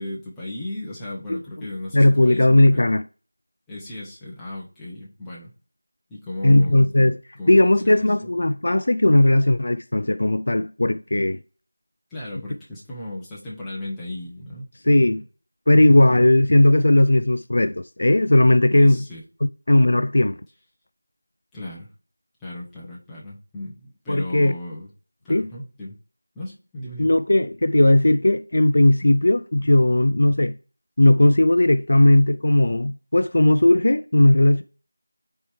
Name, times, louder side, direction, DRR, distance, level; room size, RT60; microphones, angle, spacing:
voice 1, 0.0-2.9 3.7-5.5 6.1-6.9 7.4-8.3 12.1-15.2 18.7-19.2 21.5-21.9 22.4-24.9 25.2-25.9 26.3-27.1, left 1 dB, 5° left, 0.9 m, -36 dB
voice 2, 1.9-3.0 6.4-7.1 7.5-11.4 14.9-15.2 15.7-19.0 19.4-20.4 24.1-24.5 25.3-25.5 27.0-30.6 31.0-34.6, left 1 dB, 45° left, 0.4 m, -17 dB
9.5 x 4.5 x 3.2 m
figure-of-eight pair, 175°, 0 cm